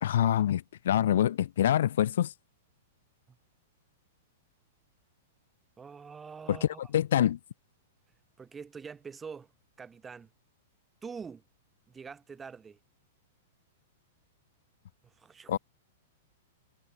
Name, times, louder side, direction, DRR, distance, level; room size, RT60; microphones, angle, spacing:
voice 1, 0.0-2.3 6.5-7.4 15.5-15.6, left 11 dB, 75° left, 0.6 m, -26 dB
voice 2, 5.8-6.9 8.4-9.5 9.8-10.3 11.0-11.4 11.9-12.8 15.2-15.6, right 5 dB, 15° right, 4.2 m, -45 dB
hypercardioid pair, 135°, 0 cm